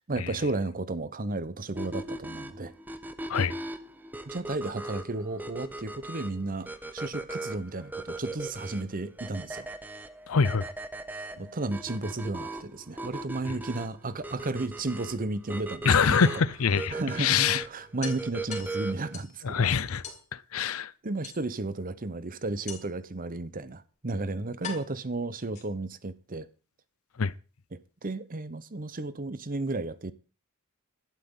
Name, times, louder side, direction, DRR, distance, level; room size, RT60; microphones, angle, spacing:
voice 1, 0.0-2.7 4.3-9.7 11.4-15.9 16.2-16.3 16.9-19.7 20.6-20.7 21.0-26.5 27.7-30.1, right 2 dB, 40° right, 0.9 m, -33 dB
sound 1, 1.8-19.2, right 2 dB, 10° right, 0.9 m, -39 dB
voice 2, 10.3-10.7 15.8-17.6 19.4-20.0 20.5-20.9 27.2-27.3, left 6 dB, 70° left, 0.6 m, -24 dB
sound 2, 14.0-15.0 16.5-16.6 17.0-17.1 17.4-17.5 18.0-19.4 20.0-20.3 21.2-21.8 22.7-23.1 23.9-24.0 24.6-26.0, left 6 dB, 35° left, 2.9 m, -43 dB
11.5 x 5.9 x 8.9 m
head